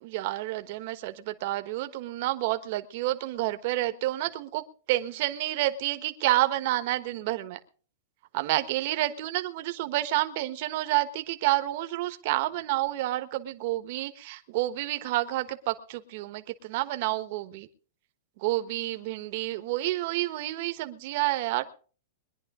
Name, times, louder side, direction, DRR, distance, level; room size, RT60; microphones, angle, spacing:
voice 1, 0.0-7.6 8.3-17.7 18.4-21.6, right 16 dB, 50° right, 9 dB, 1.2 m, -29 dB
22.5 x 10.5 x 3.7 m, 0.41 s
supercardioid pair, 155°, 0 cm